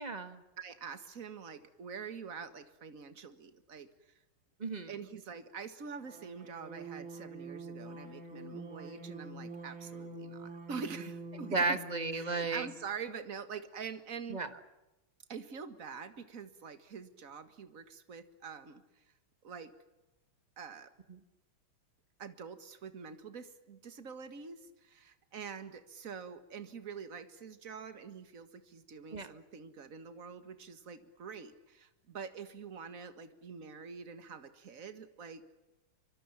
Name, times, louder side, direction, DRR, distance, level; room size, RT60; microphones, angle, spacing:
voice 1, 0.0-0.4 4.6-4.9 11.4-12.7 14.3-14.5 21.1-21.2 29.1-29.3, right 3 dB, 20° right, 10 dB, 1.4 m, -34 dB
voice 2, 0.6-4.1 4.9-11.8 12.1-14.4 15.3-18.8 19.4-19.7 20.6-20.9 22.2-35.4, right 6 dB, 40° right, 10 dB, 2.0 m, -45 dB
sound 1, 6.0-12.8, right 2 dB, 70° right, 5.4 m, -46 dB
24.5 x 24.5 x 7.3 m, 0.99 s
omnidirectional pair, 2.3 m